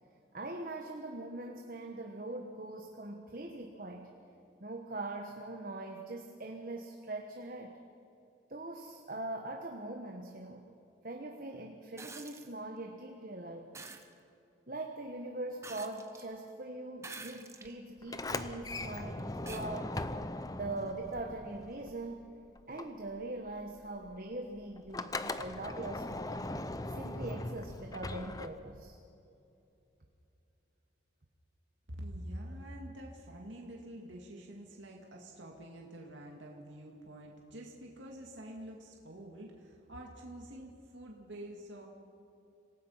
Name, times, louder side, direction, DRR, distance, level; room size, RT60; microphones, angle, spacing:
voice 1, 0.3-4.1 4.6-7.8 8.5-10.6 11.0-13.7 14.7-20.0 20.5-22.2 22.7-26.4 26.9-29.0, right 2 dB, 45° right, 2 dB, 1.3 m, -42 dB
sound 1, 12.0-12.5 13.7-14.1 15.6-16.2 17.0-17.7 18.4-18.5 19.5-19.7 21.1-21.2, right 4 dB, 15° right, 1.1 m, -47 dB
Sliding door, 18.0-22.3 22.6-28.9, left 2 dB, 20° left, 0.6 m, -40 dB
voice 2, 31.9-41.9, right 1 dB, 75° right, -1 dB, 2.2 m, -47 dB
27.0 x 17.5 x 5.7 m, 2.8 s
head